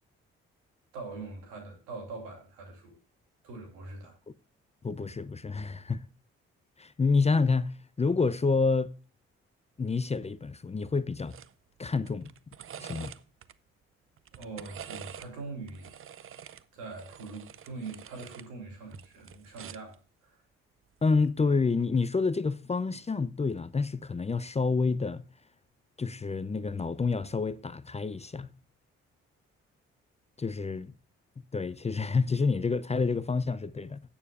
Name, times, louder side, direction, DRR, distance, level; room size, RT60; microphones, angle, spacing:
voice 1, 0.9-3.0 3.4-4.2 14.3-15.9 16.7-20.0, right 3 dB, 85° right, 2.8 m, -42 dB
voice 2, 4.8-6.0 6.8-8.9 9.8-11.4 11.8-12.3 12.8-13.1 21.0-25.3 26.0-28.5 30.4-30.9 31.5-34.0, left 4 dB, 20° left, 0.5 m, -28 dB
sound 1, 11.3-11.5 11.8-13.5 14.2-15.3 15.7-18.5 18.8-19.9 21.1-21.3, right 9 dB, 45° right, 0.6 m, -46 dB
17.5 x 7.1 x 2.4 m
hypercardioid pair, 45°, 31 cm